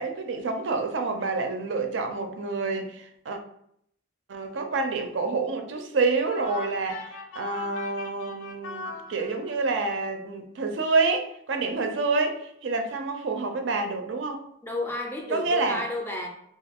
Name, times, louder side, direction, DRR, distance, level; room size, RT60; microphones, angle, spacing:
voice 1, 0.0-3.4 4.3-14.4 15.3-15.8, right 3 dB, 65° right, 5 dB, 0.4 m, -28 dB
sound 1, 6.2-9.8, left 3 dB, 75° left, 0.4 m, -40 dB
voice 2, 14.6-16.3, left 1 dB, 10° left, 1 dB, 0.3 m, -31 dB
2.5 x 2.3 x 3.4 m, 0.71 s
head